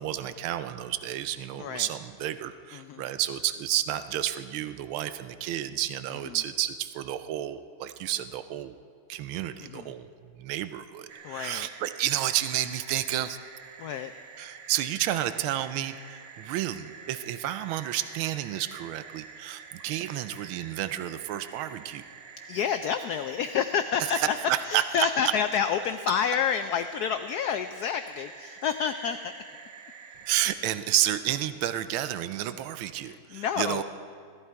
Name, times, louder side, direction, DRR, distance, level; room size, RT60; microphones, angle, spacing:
voice 1, 0.0-8.7 9.1-10.1 10.4-13.4 14.4-22.0 24.1-24.8 30.3-33.8, right 12 dB, 90° right, 12 dB, 1.4 m, -31 dB
voice 2, 2.7-3.0 6.2-6.4 9.6-9.9 11.2-11.7 13.8-14.1 22.5-24.4 24.7-29.3 33.0-33.8, left 7 dB, 90° left, 9 dB, 0.8 m, -29 dB
sound 1, 11.1-30.4, right 6 dB, 65° right, 1.6 m, -47 dB
17.5 x 14.0 x 4.6 m, 2.3 s
omnidirectional pair, 2.2 m